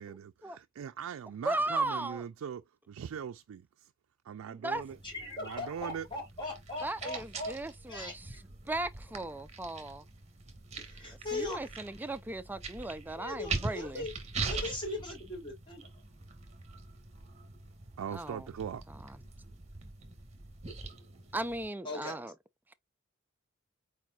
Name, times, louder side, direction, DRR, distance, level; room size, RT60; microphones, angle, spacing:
voice 1, 0.0-2.6 2.9-3.6 4.3-5.0 5.4-6.1 18.0-18.8, right 8 dB, 85° right, 0.4 m, -40 dB
voice 2, 1.4-2.2 4.5-4.8 6.8-8.1 8.7-10.0 11.3-14.0 18.1-18.5 19.0-19.2 21.3-22.3, right 2 dB, 10° right, 0.4 m, -36 dB
sound 1, 4.7-21.7, right 4 dB, 30° right, 1.3 m, -43 dB
voice 3, 5.0-7.6 7.9-8.4 10.8-11.6 13.2-14.1 14.5-16.0 21.8-22.2, left 2 dB, 25° left, 2.7 m, -39 dB
4.7 x 4.4 x 2.3 m
head